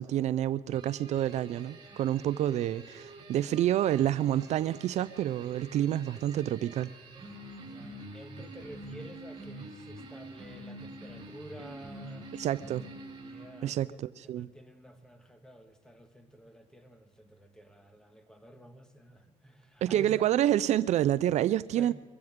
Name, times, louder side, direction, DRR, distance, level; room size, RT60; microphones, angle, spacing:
voice 1, 0.0-6.9 12.4-12.8 13.6-14.5 19.8-21.9, right 12 dB, 60° right, 0.4 m, -28 dB
sound 1, 0.7-13.9, right 2 dB, 35° right, 5.0 m, -47 dB
voice 2, 7.5-12.3 13.2-20.3 21.8-21.9, right 1 dB, 5° left, 1.7 m, -50 dB
24.0 x 15.5 x 3.7 m
cardioid pair, 100°, 13 cm